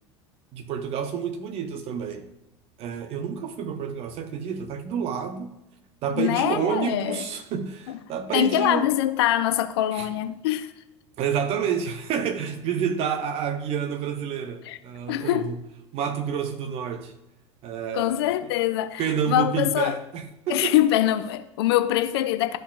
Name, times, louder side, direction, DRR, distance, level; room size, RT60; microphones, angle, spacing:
voice 1, 0.5-2.3 2.8-5.5 6.0-8.9 9.9-10.1 11.2-15.6 15.9-17.1 17.6-18.3 19.0-20.7, right 7 dB, 40° right, 0.9 m, -29 dB
voice 2, 6.1-7.2 7.9-8.0 8.3-10.7 14.7-14.8 15.1-15.5 17.9-20.0 20.5-22.6, left 13 dB, 55° left, 0.5 m, -24 dB
13.0 x 5.1 x 2.4 m
figure-of-eight pair, 75°, 15 cm